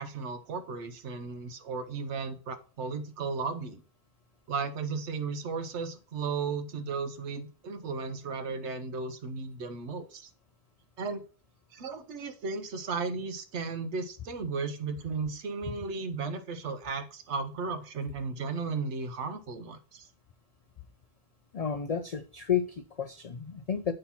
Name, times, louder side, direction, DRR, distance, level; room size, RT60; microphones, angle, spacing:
voice 1, 0.0-3.8 4.5-10.3 11.0-11.2 11.7-20.1, right 4 dB, 75° right, 8 dB, 1.1 m, -35 dB
voice 2, 21.5-23.9, left 8 dB, 65° left, 8 dB, 0.3 m, -31 dB
7.7 x 2.9 x 5.7 m, 0.38 s
omnidirectional pair, 1.2 m